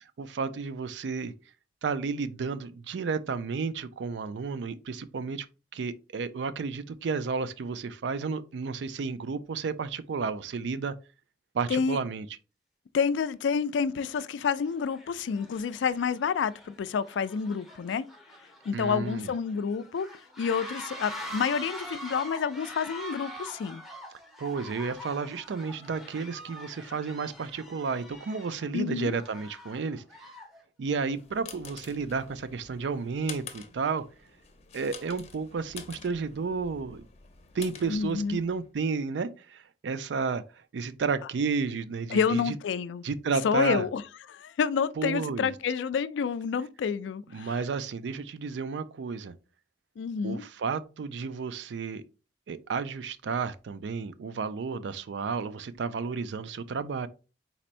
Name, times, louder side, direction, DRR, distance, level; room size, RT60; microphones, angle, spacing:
voice 1, 0.0-1.3 1.8-5.5 5.7-10.9 11.5-12.3 18.7-19.3 24.4-30.0 30.8-34.0 34.7-37.1 37.5-40.4 40.7-42.5 43.0-43.8 45.0-45.5 47.3-49.3 50.2-52.0 52.5-57.1, right 5 dB, 70° right, 0.4 m, -32 dB
voice 2, 12.9-18.0 18.7-20.1 20.4-23.8 28.7-29.1 37.9-38.4 42.1-43.0 43.4-44.0 44.3-47.5 50.0-50.4, left 6 dB, 80° left, 0.3 m, -29 dB
sound 1, 13.2-13.3 14.0-14.3 14.6-30.6, equal, ahead, 0.9 m, -44 dB
sound 2, 31.0-38.7, left 6 dB, 35° left, 0.6 m, -48 dB
4.3 x 4.1 x 2.5 m
head